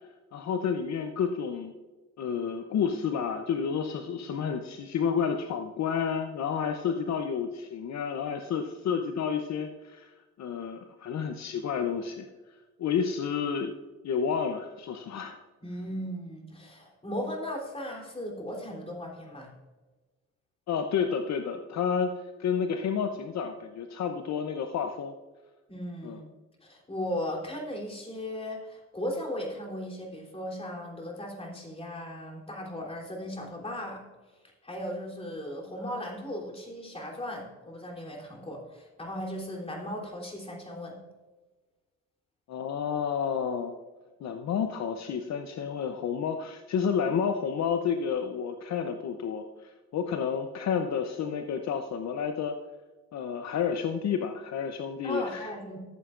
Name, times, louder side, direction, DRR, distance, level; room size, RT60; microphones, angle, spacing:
voice 1, 0.3-1.7 2.2-10.1 10.4-12.3 12.8-13.7 14.0-15.4 20.7-22.1 22.4-25.1 26.0-26.2 42.5-43.8 44.2-52.5 53.1-55.5, left 7 dB, 65° left, 7 dB, 0.8 m, -30 dB
voice 2, 15.6-19.5 25.7-26.2 26.6-34.0 34.6-41.0 55.0-55.8, equal, 20° left, -2 dB, 3.4 m, -37 dB
14.0 x 8.0 x 2.5 m, 1.2 s
cardioid pair, 90°, 30 cm